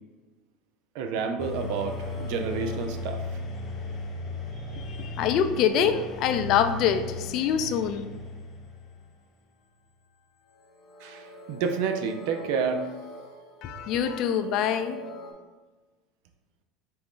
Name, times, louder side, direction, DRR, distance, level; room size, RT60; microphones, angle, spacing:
voice 1, 0.9-3.4 4.9-5.0 11.0-12.9, right 5 dB, 70° right, 6 dB, 0.5 m, -30 dB
sound 1, 1.4-9.1 10.9-15.3, left 2 dB, 40° left, 0.7 m, -38 dB
voice 2, 4.7-8.0 13.6-15.0, left 8 dB, 55° left, 9 dB, 0.4 m, -25 dB
4.1 x 2.6 x 3.6 m, 1.3 s
supercardioid pair, 100°, 0 cm